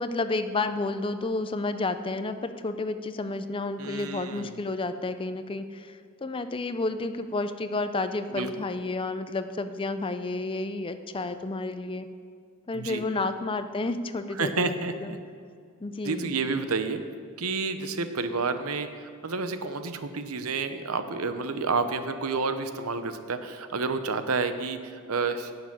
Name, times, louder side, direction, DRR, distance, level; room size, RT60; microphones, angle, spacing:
voice 1, 0.0-12.1 12.7-14.7 15.0-15.1 15.8-16.4, left 3 dB, 25° left, 10 dB, 0.5 m, -31 dB
voice 2, 3.8-4.5 8.3-8.5 12.7-13.0 14.4-15.2 16.0-17.0 17.4-25.5, right 4 dB, 80° right, 9 dB, 0.8 m, -30 dB
10.5 x 6.9 x 8.7 m, 2.3 s
head